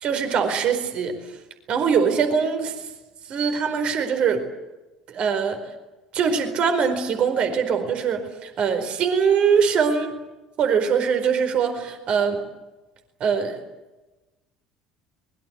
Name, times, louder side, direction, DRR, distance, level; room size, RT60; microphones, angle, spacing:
voice 1, 0.0-1.2 1.7-2.7 3.3-4.4 5.1-5.6 6.1-10.1 10.6-12.4 13.2-13.6, right 6 dB, 45° right, 7 dB, 4.6 m, -22 dB
24.5 x 22.0 x 8.2 m, 1.1 s
figure-of-eight pair, 60°, 3 cm